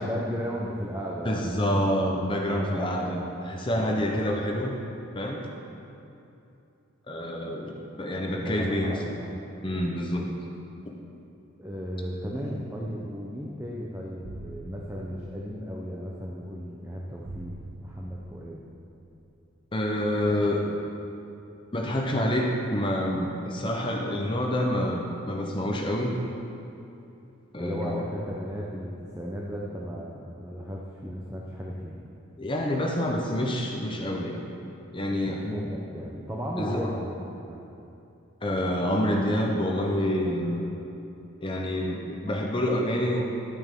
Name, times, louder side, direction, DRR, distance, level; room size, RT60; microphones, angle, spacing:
voice 1, 0.0-2.1 2.4-3.1 3.7-4.2 8.1-9.2 11.6-17.6 17.8-18.6 20.3-20.8 27.6-32.0 35.2-37.6, equal, 10° right, -4 dB, 0.7 m, -35 dB
voice 2, 1.2-4.7 5.1-5.5 7.1-9.2 9.6-10.3 19.7-20.7 21.7-26.2 27.5-28.1 32.4-34.4 34.9-35.4 36.6-36.9 38.4-40.7 41.4-43.2, left 1 dB, 25° left, 0 dB, 0.8 m, -27 dB
sound 1, 14.2-15.7 17.3-18.7, right 2 dB, 75° right, 0.6 m, -44 dB
12.5 x 8.6 x 3.7 m, 2.8 s
head